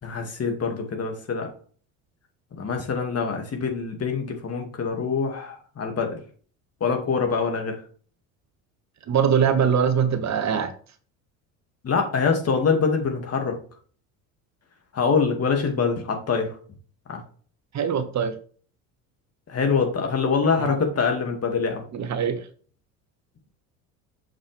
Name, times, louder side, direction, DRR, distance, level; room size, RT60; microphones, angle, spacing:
voice 1, 0.0-1.5 2.6-6.2 6.8-7.8 11.8-13.6 14.9-16.5 17.1-17.2 19.5-21.9, left 5 dB, 35° left, 4 dB, 2.3 m, -24 dB
voice 2, 9.1-10.7 17.7-18.3 20.6-20.7 21.9-22.4, right 7 dB, 40° right, 9 dB, 1.1 m, -22 dB
6.7 x 5.8 x 3.4 m, 0.43 s
hypercardioid pair, 75°, 40 cm